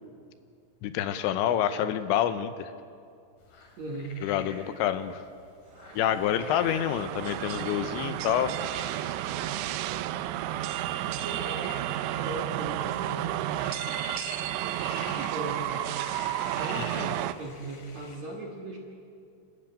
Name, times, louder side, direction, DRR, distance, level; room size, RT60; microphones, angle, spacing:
voice 1, 0.8-2.7 4.2-5.2 6.0-8.5 16.7-17.1, left 10 dB, 80° left, 11 dB, 2.9 m, -27 dB
sound 1, 3.4-18.2, left 4 dB, 50° left, 3.6 m, -47 dB
voice 2, 3.8-4.2 11.2-13.4 14.9-15.9 16.5-18.8, right 2 dB, 55° right, -1 dB, 2.1 m, -39 dB
sound 2, 5.8-17.3, right 13 dB, 80° right, 2.8 m, -32 dB
29.0 x 13.0 x 8.8 m, 2.3 s
omnidirectional pair, 5.5 m